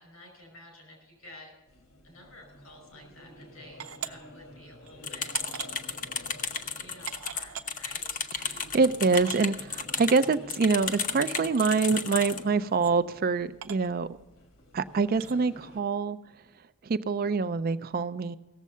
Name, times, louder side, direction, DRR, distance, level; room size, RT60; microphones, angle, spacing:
voice 1, 0.0-1.5 2.0-5.5 6.8-8.2, left 1 dB, 85° left, 2 dB, 5.0 m, -51 dB
sound 1, 1.7-15.8, left 1 dB, 70° left, 1.6 m, -50 dB
sound 2, 3.8-4.1 4.8-4.9 5.3-5.8 6.5-6.6 7.1-7.7 8.5-8.6 8.7-8.8 9.1-9.5 10.6-10.7 11.4-11.7 12.7-12.9 13.6-13.9 15.1-15.3, right 8 dB, 80° right, 0.8 m, -40 dB
sound 3, 5.0-12.4, left 6 dB, 40° left, 0.7 m, -33 dB
voice 2, 8.4-14.1 14.7-16.2 16.8-18.4, right 4 dB, 45° right, 13 dB, 0.4 m, -25 dB
17.0 x 7.3 x 5.5 m, 1.2 s
head